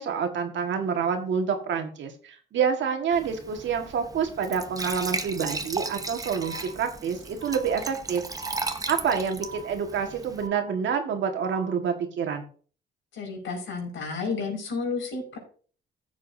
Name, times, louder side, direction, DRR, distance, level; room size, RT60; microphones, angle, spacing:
voice 1, 0.0-8.2 8.9-12.4, right 6 dB, 70° right, 5 dB, 1.7 m, -27 dB
Glass / Trickle dribble / Fill (with liquid), 3.1-10.5, right 3 dB, 20° right, 0.9 m, -36 dB
sound 1, 6.4-7.1 7.4-8.1 8.4-9.1 9.4-10.1 10.4-11.1 11.4-11.9, right 4 dB, 50° left, 3.1 m, -42 dB
voice 2, 13.1-15.4, left 4 dB, 75° left, 0 dB, 5.3 m, -31 dB
15.0 x 7.3 x 2.7 m, 0.42 s
cardioid pair, 90°, 20 cm